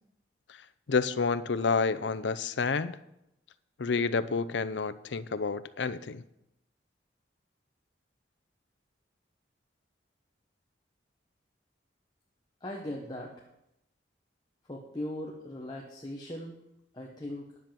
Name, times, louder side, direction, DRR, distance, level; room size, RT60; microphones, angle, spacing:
voice 1, 0.9-3.0 3.8-6.2, left 4 dB, 75° left, 15 dB, 0.6 m, -29 dB
voice 2, 12.6-13.3 14.7-16.6 16.9-17.5, left 1 dB, 20° left, -2 dB, 1.2 m, -39 dB
10.5 x 7.0 x 7.5 m, 0.83 s
head